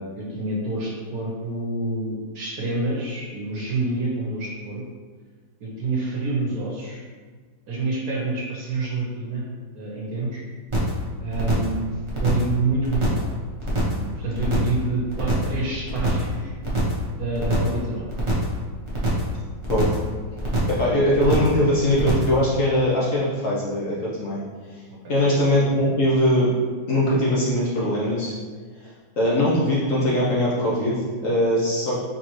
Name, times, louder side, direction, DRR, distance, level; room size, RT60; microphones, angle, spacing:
voice 1, 0.0-4.8 5.6-7.0 7.7-9.4 9.7-10.4 11.2-11.8 12.2-13.2 13.9-16.5 17.2-18.1 24.9-25.0, right 2 dB, 65° right, -3 dB, 1.1 m, -27 dB
sound 1, 10.7-11.0 11.3-11.8 12.1-12.5 12.8-13.3 13.6-14.0 14.3-14.8 15.1-15.6 15.9-16.3 16.6-17.0 17.3-17.8 18.1-18.6 18.9-19.3 19.6-20.1 20.4-20.8 21.1-21.6 21.9-22.4, right 1 dB, 35° right, 0.5 m, -25 dB
voice 2, 20.7-24.4 24.7-24.8 25.1-26.5 26.9-28.3 28.8-32.0, left 1 dB, 55° left, -7 dB, 1.0 m, -21 dB
4.3 x 3.6 x 3.0 m, 1.5 s
omnidirectional pair, 2.0 m